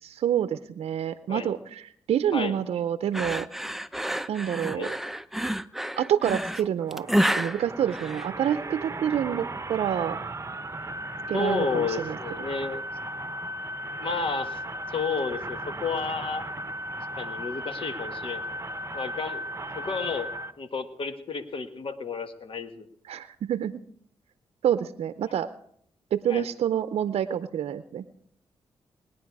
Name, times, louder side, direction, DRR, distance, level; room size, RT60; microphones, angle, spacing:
voice 1, 0.0-3.5 4.3-4.9 6.0-10.2 11.3-12.2 23.1-23.8 24.6-25.5 26.1-28.0, right 9 dB, 75° right, 11 dB, 0.6 m, -27 dB
sound 1, 3.1-8.7, equal, 5° right, 0.6 m, -29 dB
sound 2, 6.8-20.5, right 1 dB, 30° right, 0.9 m, -36 dB
voice 2, 11.3-12.8 14.0-14.6 14.9-16.4 17.2-18.4 18.9-19.4 19.8-20.3 20.6-22.9 26.3-26.5, left 4 dB, 60° left, 9 dB, 1.5 m, -31 dB
20.0 x 10.0 x 4.7 m, 0.67 s
supercardioid pair, 50°, 10 cm